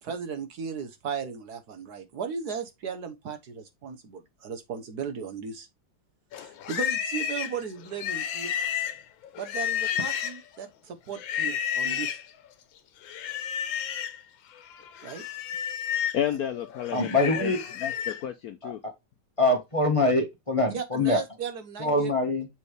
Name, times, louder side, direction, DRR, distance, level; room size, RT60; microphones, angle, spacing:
voice 1, 0.0-5.7 6.4-8.5 9.4-12.2 15.0-15.2 20.7-22.1, right 6 dB, 60° right, 1.4 m, -36 dB
Livestock farm animals working animals, 6.3-10.6 11.1-12.3 13.0-14.2 14.6-18.2, left 9 dB, 90° left, 1.6 m, -31 dB
voice 2, 16.1-18.8, left 10 dB, 65° left, 0.9 m, -32 dB
voice 3, 16.9-17.6 18.6-18.7 19.4-21.2 21.8-22.5, left 2 dB, 20° left, 1.2 m, -24 dB
7.1 x 4.4 x 3.3 m
omnidirectional pair, 2.0 m